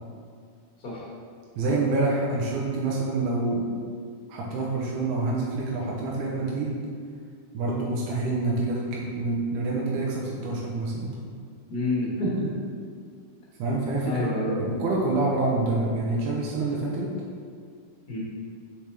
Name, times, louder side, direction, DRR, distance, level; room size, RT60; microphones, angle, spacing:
voice 1, 1.6-3.7 4.3-6.8 7.5-11.2 13.6-14.3 14.6-17.1, right 2 dB, 75° right, -4 dB, 2.2 m, -27 dB
voice 2, 11.7-12.5 14.0-14.5 18.1-18.2, left 1 dB, 35° left, -6 dB, 1.7 m, -28 dB
6.7 x 5.8 x 3.4 m, 2.1 s
omnidirectional pair, 3.7 m